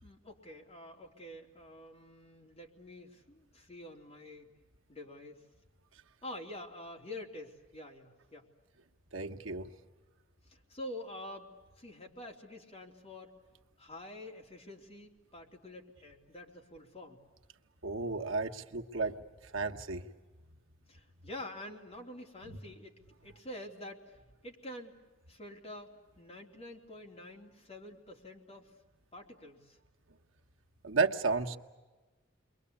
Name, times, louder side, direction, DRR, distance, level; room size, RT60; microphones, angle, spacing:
voice 1, 0.0-4.5 4.9-5.4 6.2-8.5 10.5-11.5 11.8-13.3 13.8-17.2 20.9-24.2 24.4-25.0 25.3-28.7 29.1-29.8, left 1 dB, 30° left, 1 dB, 3.6 m, -47 dB
voice 2, 9.1-9.7 17.8-19.1 19.5-20.0 30.8-31.6, right 4 dB, 70° right, 3 dB, 1.4 m, -32 dB
29.5 x 23.5 x 8.4 m, 1.2 s
head